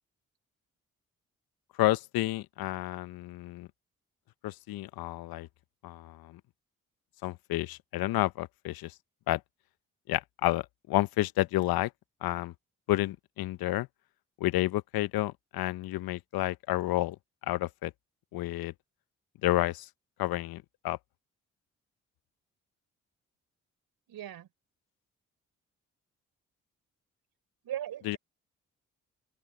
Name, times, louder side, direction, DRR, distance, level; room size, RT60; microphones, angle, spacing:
voice 1, 1.8-3.7 4.4-5.5 5.8-6.4 7.2-8.9 9.3-9.4 10.1-11.9 12.2-12.5 12.9-13.9 14.4-17.2 17.4-17.9 18.3-18.7 19.4-19.9 20.2-21.0 28.1-28.2, left 16 dB, 70° left, 0.9 m, -30 dB
voice 2, 24.1-24.5 27.6-28.2, right 11 dB, 70° right, 4.6 m, -38 dB
open air
hypercardioid pair, 40°, 37 cm